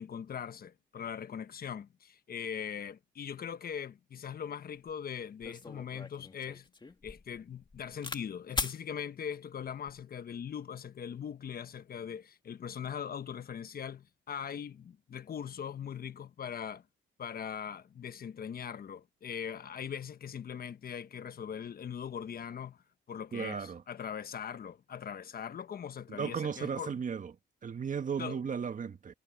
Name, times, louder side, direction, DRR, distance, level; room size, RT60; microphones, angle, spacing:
voice 1, 0.0-6.7 7.0-16.8 17.2-22.8 23.1-26.9 28.2-28.4, left 8 dB, 50° left, 1.2 m, -41 dB
sound 1, 4.9-5.0 5.4-8.2 8.5-8.8 9.7-10.0, left 3 dB, 25° left, 1.9 m, -39 dB
voice 2, 23.3-23.8 26.1-27.3 27.6-29.1, right 6 dB, 40° right, 1.7 m, -35 dB
cardioid pair, 90°, 20 cm